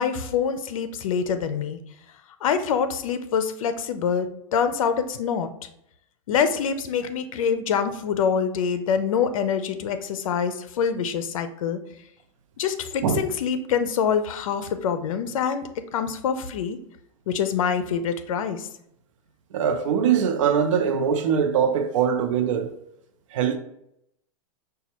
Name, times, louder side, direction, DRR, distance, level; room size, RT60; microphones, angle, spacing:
voice 1, 0.0-1.8 2.4-5.5 6.3-11.8 12.6-15.6 15.9-16.8 17.3-18.7, left 7 dB, 75° left, 0.5 m, -25 dB
voice 2, 19.5-22.7 23.3-23.6, right 7 dB, 70° right, 0.6 m, -22 dB
5.3 x 2.3 x 2.9 m
supercardioid pair, 150°, 17 cm